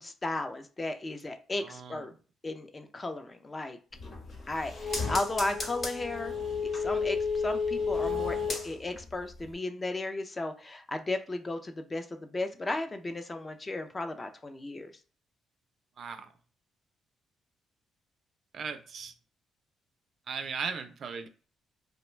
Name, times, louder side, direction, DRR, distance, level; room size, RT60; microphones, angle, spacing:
voice 1, 0.0-2.1 2.4-3.8 4.5-6.3 6.7-14.9, left 2 dB, 25° left, 0.4 m, -35 dB
voice 2, 1.6-2.1 16.0-16.3 18.5-19.1 20.3-21.3, right 5 dB, 55° right, 0.4 m, -37 dB
sound 1, 3.9-9.1 9.4-9.5, left 4 dB, 45° left, 0.9 m, -32 dB
2.4 x 2.2 x 3.1 m
cardioid pair, 90°, 0 cm